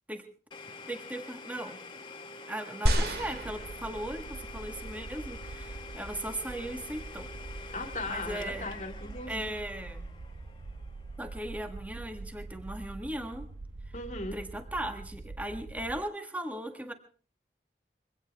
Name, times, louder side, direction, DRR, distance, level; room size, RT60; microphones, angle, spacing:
Domestic sounds home sounds, 0.5-12.2, left 3 dB, 25° left, 1.4 m, -47 dB
voice 1, 0.9-1.8 2.5-7.3 8.1-8.7 9.3-10.1 11.2-13.5 14.3-16.9, right 1 dB, 10° right, 6 dB, 1.4 m, -38 dB
sound 1, 2.9-4.4 5.1-5.2, right 1 dB, 60° right, 2.3 m, -30 dB
sound 2, 3.0-16.0, right 3 dB, 85° right, 0.7 m, -44 dB
voice 2, 7.7-9.5 13.9-14.4, left 2 dB, 40° left, 6 dB, 2.0 m, -37 dB
23.0 x 17.0 x 3.4 m, 0.39 s
head